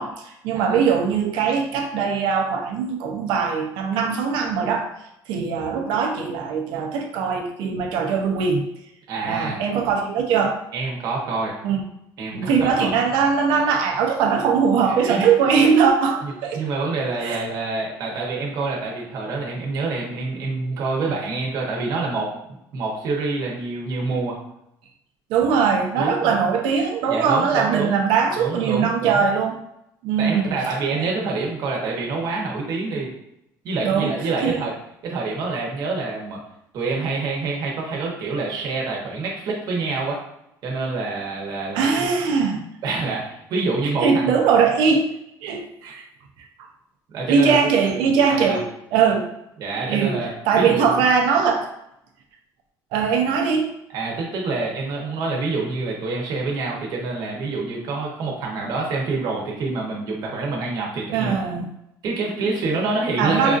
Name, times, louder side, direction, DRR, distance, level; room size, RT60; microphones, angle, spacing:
voice 1, 0.0-4.9 5.3-8.7 9.2-10.6 11.6-11.8 12.3-16.6 17.2-17.4 25.3-29.6 30.0-30.6 33.8-34.1 34.4-34.6 41.7-42.6 44.0-45.1 45.4-46.1 47.3-49.3 49.9-50.2 50.5-51.7 52.9-53.7 61.1-61.7 63.2-63.6, right 6 dB, 85° right, 3 dB, 0.7 m, -21 dB
voice 2, 9.1-9.6 10.7-11.6 12.2-12.9 14.9-15.3 16.2-22.3 22.7-24.4 25.9-26.4 27.1-27.9 28.4-29.3 30.2-33.1 33.6-34.7 35.0-36.4 36.7-40.2 40.6-42.1 42.8-44.3 45.8-45.9 47.1-47.6 48.2-48.6 49.6-51.0 53.9-61.3 62.0-63.6, right 3 dB, 55° right, -2 dB, 1.0 m, -27 dB
4.9 x 2.5 x 2.5 m, 0.80 s
cardioid pair, 145°, 8 cm